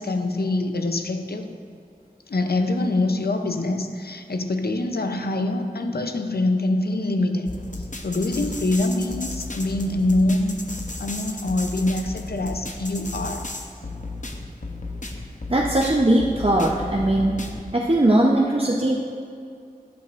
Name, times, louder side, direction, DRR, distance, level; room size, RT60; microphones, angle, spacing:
voice 1, 0.0-1.6 2.3-7.5 7.8-10.6 11.0-13.5, left 2 dB, 90° left, 6 dB, 0.6 m, -24 dB
sound 1, 7.5-17.6, left 2 dB, 55° left, 0.8 m, -34 dB
voice 2, 15.5-17.3 17.7-19.0, right 1 dB, 35° right, -3 dB, 0.8 m, -19 dB
12.0 x 10.5 x 2.5 m, 2.4 s
wide cardioid pair, 50°, 16 cm